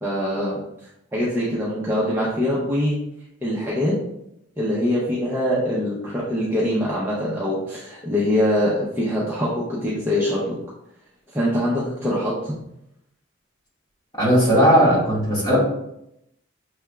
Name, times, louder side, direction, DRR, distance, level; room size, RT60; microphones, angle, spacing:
voice 1, 0.0-0.6 1.1-3.0 3.4-3.9 4.6-10.6 11.3-12.5, left 1 dB, 10° right, -7 dB, 0.7 m, -23 dB
voice 2, 14.2-15.6, equal, 20° left, -7 dB, 1.7 m, -17 dB
5.9 x 3.4 x 2.3 m, 0.80 s
head